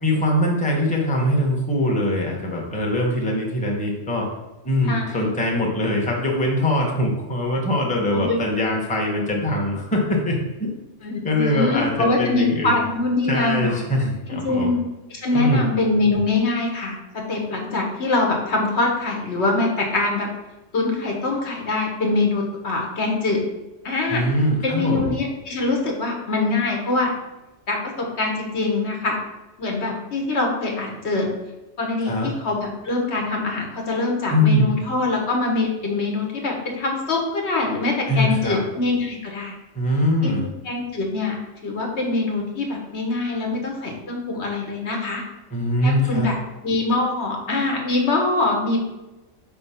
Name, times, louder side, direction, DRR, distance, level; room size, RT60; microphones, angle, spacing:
voice 1, 0.0-4.3 4.6-10.4 11.2-12.7 13.3-14.7 15.3-15.7 24.1-25.1 32.0-32.3 34.3-34.7 38.1-38.6 39.7-40.5 45.5-46.3, left 1 dB, 5° left, -1 dB, 0.9 m, -22 dB
voice 2, 4.8-5.3 8.1-8.4 11.0-13.8 14.3-14.8 15.1-20.3 20.7-23.4 23.8-24.2 24.6-27.1 27.7-29.2 29.6-31.3 31.8-39.5 40.2-40.3 40.6-41.4 41.6-45.2 45.8-46.3 46.6-48.8, left 3 dB, 65° left, 0 dB, 1.3 m, -23 dB
5.1 x 3.5 x 5.6 m, 1.0 s
omnidirectional pair, 1.2 m